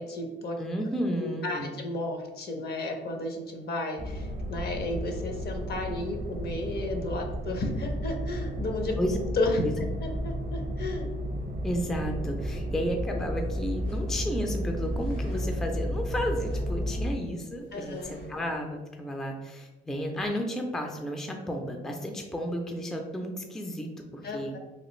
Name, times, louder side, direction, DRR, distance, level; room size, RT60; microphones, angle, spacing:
voice 1, 0.0-0.6 1.2-9.0 9.3-11.0 17.7-18.1 24.2-24.6, left 2 dB, 55° left, 3 dB, 0.6 m, -33 dB
voice 2, 0.6-1.7 9.0-9.2 9.6-9.7 11.6-24.5, equal, ahead, 3 dB, 0.3 m, -32 dB
sound 1, 4.0-17.1, equal, 45° right, 0.6 m, -33 dB
sound 2, 13.5-18.6, equal, 75° left, 1.3 m, -50 dB
3.2 x 2.3 x 3.0 m, 1.2 s
cardioid pair, 90°, 20 cm